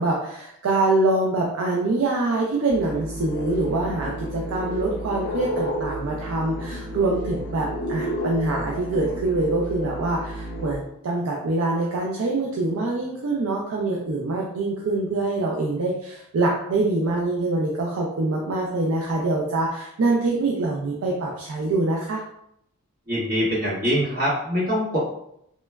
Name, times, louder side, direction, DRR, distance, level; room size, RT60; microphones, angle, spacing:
voice 1, 0.0-22.2, right 2 dB, 65° right, -2 dB, 0.4 m, -24 dB
sound 1, 2.7-10.8, equal, 50° left, 0.5 m, -31 dB
voice 2, 23.1-25.0, equal, 40° right, -9 dB, 1.4 m, -23 dB
2.9 x 2.1 x 2.2 m, 0.75 s
head